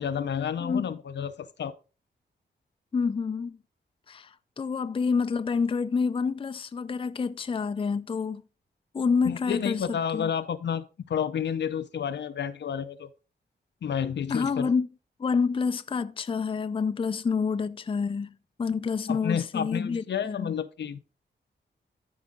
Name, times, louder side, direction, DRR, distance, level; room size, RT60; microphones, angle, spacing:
voice 1, 0.0-1.7 9.2-13.1 13.8-14.7 19.1-21.0, left 8 dB, 75° left, 0.6 m, -30 dB
voice 2, 2.9-3.6 4.1-8.4 8.9-10.3 14.3-14.9 15.2-20.5, left 5 dB, 30° left, 0.4 m, -28 dB
13.0 x 4.8 x 3.6 m
wide cardioid pair, 100°, 18 cm